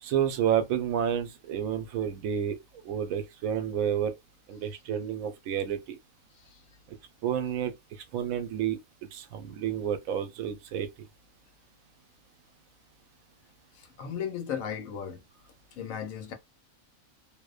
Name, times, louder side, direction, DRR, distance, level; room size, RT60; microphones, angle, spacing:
voice 1, 0.0-2.6 2.8-4.1 4.5-6.0 6.9-7.0 7.2-8.8 9.1-10.9, right 9 dB, 85° right, 1.0 m, -30 dB
voice 2, 13.7-15.2 15.7-16.3, left 8 dB, 80° left, 1.1 m, -36 dB
2.6 x 2.1 x 2.3 m
omnidirectional pair, 1.4 m